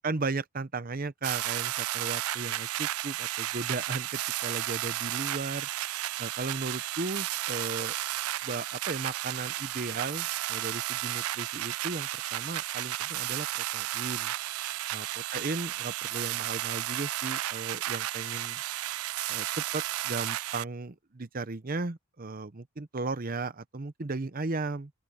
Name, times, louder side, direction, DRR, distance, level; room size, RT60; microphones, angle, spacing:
voice 1, 0.0-5.7 6.2-7.9 8.4-14.3 14.9-18.6 19.3-24.9, right 3 dB, 40° right, 0.7 m, -36 dB
sound 1, 1.2-20.6, right 14 dB, 75° right, 0.4 m, -33 dB
open air
head